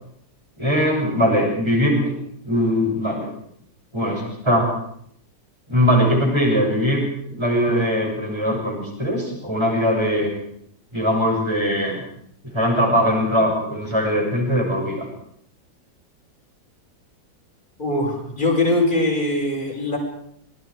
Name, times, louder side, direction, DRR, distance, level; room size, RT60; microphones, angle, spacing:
voice 1, 0.6-2.1 2.4-3.3 3.9-4.7 5.7-10.3 10.9-12.0 12.5-15.1, equal, 15° right, 0 dB, 7.0 m, -21 dB
voice 2, 17.8-20.0, left 2 dB, 25° left, -2 dB, 5.5 m, -21 dB
27.0 x 21.5 x 4.8 m, 0.70 s
omnidirectional pair, 1.9 m